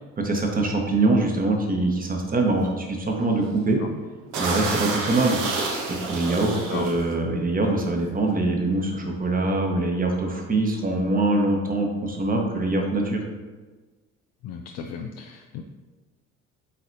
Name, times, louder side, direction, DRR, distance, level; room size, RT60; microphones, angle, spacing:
voice 1, 0.2-3.8 4.3-5.4 5.9-13.2, right 2 dB, 20° right, 2 dB, 1.1 m, -23 dB
sound 1, 1.3-1.6 2.0-2.3 2.5-2.7 3.2-3.6 3.9-4.0 4.3-7.1 7.9-8.1 8.4-9.5, right 3 dB, 60° right, 1.1 m, -30 dB
voice 2, 6.5-6.9 14.4-15.6, left 6 dB, 40° left, 3 dB, 0.5 m, -35 dB
8.5 x 4.1 x 2.7 m, 1.3 s
figure-of-eight pair, 55°, 40 cm